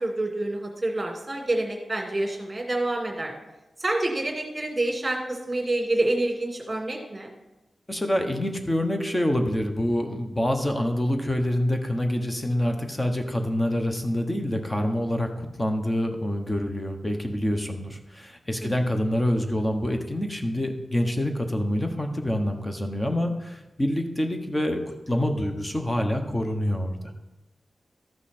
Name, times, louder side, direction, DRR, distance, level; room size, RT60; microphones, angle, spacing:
voice 1, 0.0-3.3 3.8-7.3 18.6-18.7, right 2 dB, 25° right, 0 dB, 2.2 m, -27 dB
voice 2, 7.9-27.1, left 1 dB, 20° left, 4 dB, 1.1 m, -26 dB
14.0 x 5.7 x 4.3 m, 1.0 s
wide cardioid pair, 110°, 0 cm